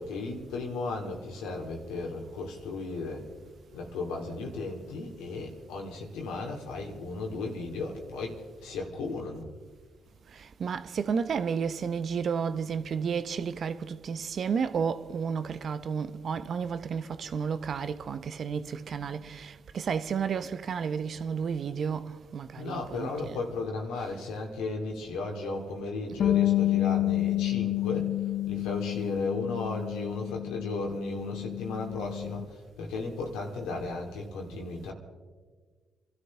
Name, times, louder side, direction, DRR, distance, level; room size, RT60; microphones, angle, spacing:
voice 1, 0.0-3.3 3.7-9.4 22.6-28.1 28.5-34.9, left 3 dB, 90° left, 2.6 m, -35 dB
voice 2, 10.3-23.4 24.0-24.1, right 6 dB, 60° right, 0.8 m, -32 dB
Bass guitar, 26.2-32.4, left 14 dB, 70° left, 0.5 m, -29 dB
27.5 x 13.0 x 3.7 m
supercardioid pair, 60°, 0 cm